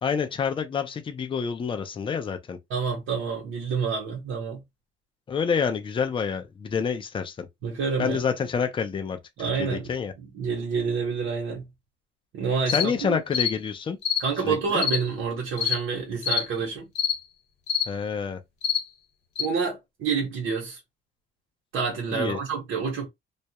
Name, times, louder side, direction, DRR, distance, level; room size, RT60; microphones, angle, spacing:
voice 1, 0.0-2.6 5.3-7.5 8.0-9.2 9.6-10.1 12.7-14.0 14.4-14.8 17.9-18.4 22.1-22.4, left 6 dB, 25° left, 0.4 m, -28 dB
voice 2, 2.7-4.6 7.6-8.2 9.4-9.9 10.2-11.7 12.3-13.2 14.2-16.9 19.4-20.8 21.7-23.1, right 5 dB, 80° right, 0.9 m, -28 dB
sound 1, 12.7-12.9 13.3-13.5 14.0-14.2 14.8-15.0 15.6-15.8 16.2-16.4 16.9-17.2 17.7-17.9 18.6-18.8 19.4-19.5, left 8 dB, 55° left, 1.2 m, -25 dB
2.3 x 2.0 x 2.7 m
cardioid pair, 130°, 21 cm